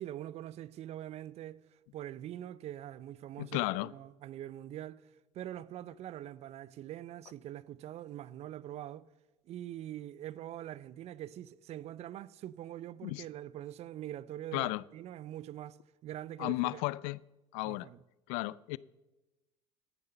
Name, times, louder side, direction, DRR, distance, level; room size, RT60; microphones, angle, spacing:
voice 1, 0.0-5.1 5.3-9.1 9.5-15.8 16.0-16.8 17.6-18.0, right 12 dB, 45° right, 0.5 m, -44 dB
voice 2, 3.4-3.9 13.0-13.2 14.5-14.8 16.4-17.2 17.5-17.9 18.3-18.8, left 22 dB, 65° left, 0.4 m, -33 dB
14.5 x 6.8 x 5.4 m
hypercardioid pair, 75°, 15 cm